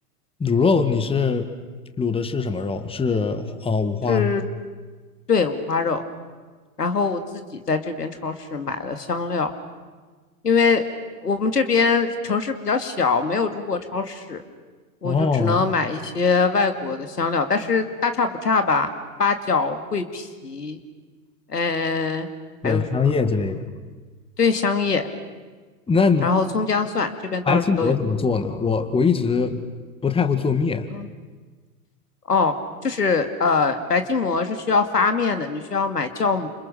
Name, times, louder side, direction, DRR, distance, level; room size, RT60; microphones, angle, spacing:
voice 1, 0.4-1.5 2.0-4.3 15.0-15.6 22.6-23.7 25.9-26.3 27.5-29.6 30.0-30.9, left 5 dB, 10° left, 9 dB, 1.9 m, -22 dB
voice 2, 4.1-4.4 5.3-6.0 6.8-9.5 10.4-10.8 11.2-14.4 15.0-18.9 19.2-20.8 21.5-22.3 22.6-23.0 24.4-25.0 26.2-27.9 30.9-31.1 32.3-32.5 32.8-36.5, left 4 dB, 85° left, 8 dB, 2.4 m, -23 dB
30.0 x 27.5 x 6.5 m, 1.4 s
figure-of-eight pair, 95°, 46 cm